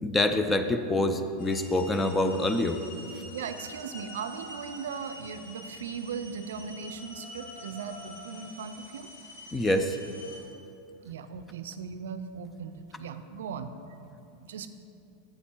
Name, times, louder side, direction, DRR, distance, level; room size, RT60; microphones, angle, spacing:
voice 1, 0.0-2.8 9.5-10.0, left 1 dB, 15° left, 8 dB, 0.6 m, -26 dB
sound 1, 1.4-10.4, left 1 dB, 90° left, 2.1 m, -46 dB
voice 2, 3.3-9.1 11.0-13.7 14.5-14.7, right 6 dB, 80° right, 10 dB, 0.5 m, -38 dB
8.2 x 8.0 x 4.5 m, 2.6 s
hypercardioid pair, 105°, 0 cm